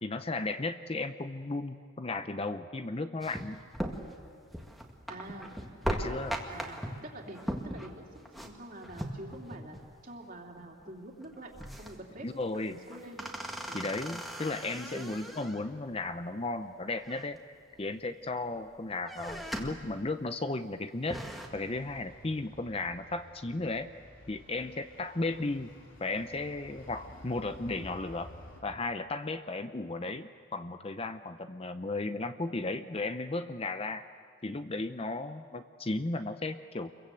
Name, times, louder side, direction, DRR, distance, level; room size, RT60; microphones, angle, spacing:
voice 1, 0.0-3.6 5.9-6.4 12.2-12.8 13.7-17.4 17.8-21.2 21.5-23.9 24.3-25.7 26.0-28.3 28.6-34.0 34.4-36.9, left 2 dB, 25° left, 9 dB, 0.6 m, -35 dB
sound 1, 3.2-9.9 10.1-10.2 10.6-10.9 11.2-12.2 12.6-15.8 16.9-17.8 18.2-18.7 19.0-19.9 20.3-20.4 20.8-21.5, equal, ahead, 1.9 m, -39 dB
voice 2, 5.1-5.5 6.5-6.8 7.0-7.4 7.7-9.8 10.0-12.3 12.5-13.2 13.7-13.9 14.9-15.1, right 1 dB, 40° right, 0 dB, 3.2 m, -46 dB
sound 2, 21.1-28.6, left 1 dB, 60° left, 4.0 m, -53 dB
28.5 x 23.0 x 7.9 m, 2.3 s
head